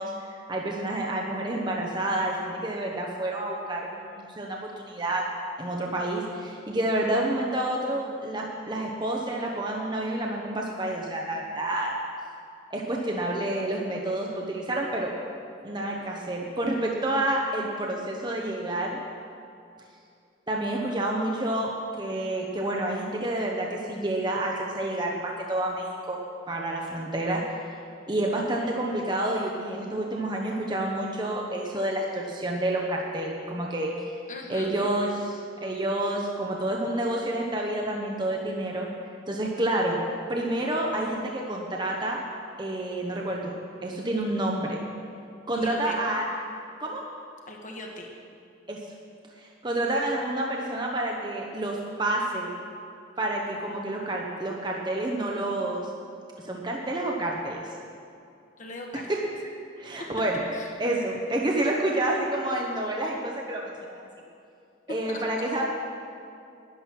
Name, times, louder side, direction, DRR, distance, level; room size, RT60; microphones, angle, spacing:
voice 1, 0.0-5.2 5.6-11.9 12.7-15.1 15.6-19.0 20.5-21.7 22.0-26.2 26.5-27.4 28.1-33.9 34.5-38.9 39.3-40.0 40.3-42.2 42.6-43.6 43.8-44.8 45.5-46.3 46.8-47.0 48.7-48.8 49.4-52.5 53.2-55.8 56.4-57.6 59.1-59.2 59.8-60.4 60.8-64.1 64.9-65.6, right 1 dB, 20° right, -1 dB, 0.9 m, -29 dB
voice 2, 34.3-34.7 45.5-46.0 47.5-48.1 58.6-59.0 60.5-60.7 65.1-65.5, left 2 dB, 40° left, 1 dB, 1.5 m, -40 dB
11.5 x 10.5 x 6.0 m, 2.5 s
head